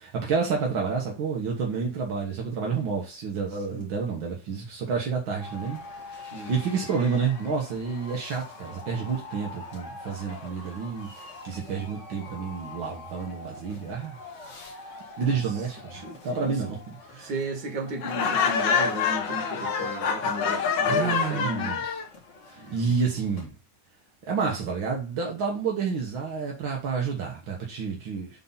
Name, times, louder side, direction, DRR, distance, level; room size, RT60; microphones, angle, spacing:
voice 1, 0.1-5.8 6.1-6.2 6.5-11.1 11.4-14.2 15.2-15.9 16.2-17.3 20.8-22.0 22.5-23.5 24.3-28.3, right 5 dB, 80° right, 2.2 m, -29 dB
sound 1, 5.4-23.5, left 3 dB, 40° left, 1.9 m, -45 dB
voice 2, 6.3-6.8 15.3-15.4 15.9-16.5 17.2-21.8 22.6-22.9, right 1 dB, 60° right, 2.5 m, -35 dB
Laughter, 18.0-22.1, left 6 dB, 70° left, 1.6 m, -26 dB
5.6 x 4.0 x 5.6 m
omnidirectional pair, 2.1 m